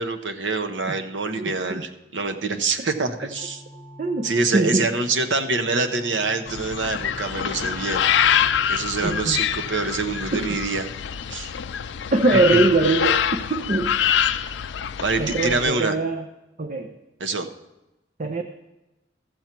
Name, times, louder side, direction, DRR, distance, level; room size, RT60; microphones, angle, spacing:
voice 1, 0.0-3.6 4.2-8.0 8.4-10.9 11.3-11.5 12.3-12.6 15.0-16.0 17.2-17.5, right 3 dB, 80° right, 7 dB, 0.9 m, -25 dB
voice 2, 1.4-1.9 4.0-4.9 9.0-9.4 10.3-10.6 12.1-14.0 15.2-16.3 16.6-16.9 18.2-18.4, right 2 dB, 40° right, 6 dB, 0.6 m, -22 dB
sound 1, 3.2-10.6, left 1 dB, 5° right, 1.5 m, -45 dB
sound 2, 6.5-15.7, left 9 dB, 80° left, 0.4 m, -25 dB
14.0 x 7.1 x 4.4 m, 0.99 s
head